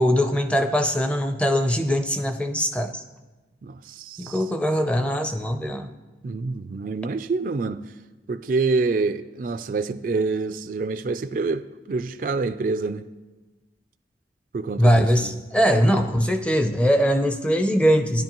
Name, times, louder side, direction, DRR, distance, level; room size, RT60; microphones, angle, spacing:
voice 1, 0.0-3.0 4.2-5.9 14.8-18.2, equal, 5° left, 0.5 m, -21 dB
voice 2, 3.6-4.3 6.2-7.8 8.3-13.0 14.5-15.4 15.7-16.0, right 3 dB, 50° right, 0.3 m, -27 dB
14.5 x 10.5 x 3.0 m
head